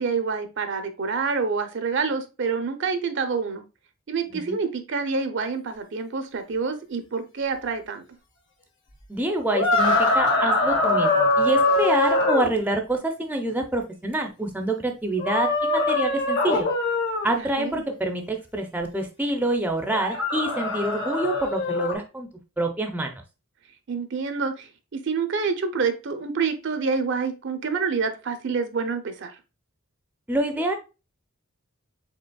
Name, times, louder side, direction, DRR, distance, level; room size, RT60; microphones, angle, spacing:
voice 1, 0.0-3.6 4.1-8.0 17.4-17.8 23.9-29.3, right 5 dB, 55° right, 8 dB, 0.6 m, -27 dB
voice 2, 9.1-16.7 17.2-22.3 22.6-23.2 30.3-30.7, right 1 dB, 10° right, 4 dB, 0.5 m, -27 dB
sound 1, 9.5-12.5 15.2-17.3 19.9-21.9, left 2 dB, 55° left, 1.4 m, -22 dB
5.1 x 3.9 x 2.3 m, 0.29 s
head